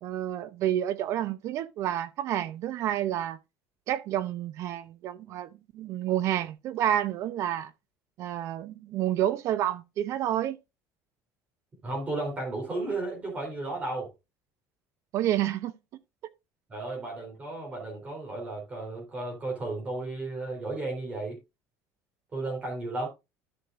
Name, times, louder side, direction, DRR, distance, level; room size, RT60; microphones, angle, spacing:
voice 1, 0.0-3.4 3.9-7.7 8.2-10.6 15.1-15.7, right 11 dB, 50° right, 0.7 m, -29 dB
voice 2, 11.8-14.1 16.7-21.4 22.3-23.1, right 2 dB, 20° right, 3.6 m, -34 dB
12.5 x 6.3 x 2.5 m
cardioid pair, 150°, 6 cm